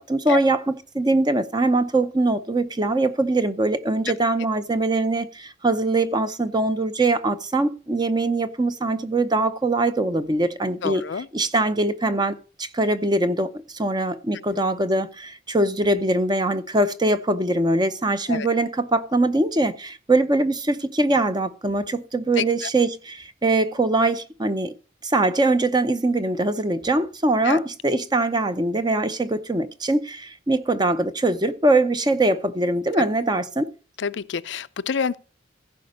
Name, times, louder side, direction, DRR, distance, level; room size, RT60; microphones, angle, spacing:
voice 1, 0.0-24.7 25.0-33.7, right 2 dB, 20° right, 0.7 m, -22 dB
voice 2, 10.8-11.3 18.3-18.5 22.4-22.5 27.4-27.6 34.0-35.2, left 6 dB, 75° left, 0.5 m, -26 dB
15.0 x 5.1 x 6.4 m
head